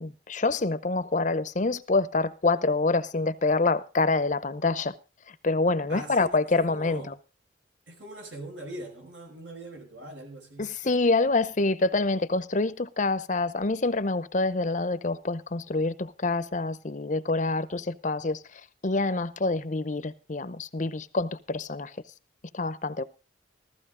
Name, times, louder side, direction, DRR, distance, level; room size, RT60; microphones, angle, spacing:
voice 1, 0.0-4.9 5.4-7.1 10.6-18.4 18.8-21.9 22.5-23.0, left 3 dB, 40° left, 0.7 m, -26 dB
voice 2, 5.9-7.2 7.9-10.7, right 1 dB, 80° right, 5.9 m, -42 dB
15.0 x 14.5 x 3.8 m
head